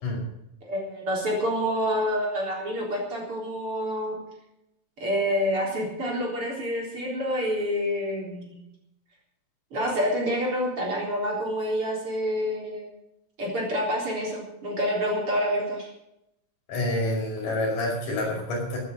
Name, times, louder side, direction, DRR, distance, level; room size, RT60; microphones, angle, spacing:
voice 1, 0.6-4.2 5.0-8.7 9.7-12.9 13.4-15.9, equal, 40° right, -2 dB, 4.6 m, -27 dB
voice 2, 16.7-18.8, left 1 dB, 65° left, -2 dB, 7.0 m, -27 dB
16.0 x 8.8 x 7.7 m, 0.83 s
omnidirectional pair, 4.0 m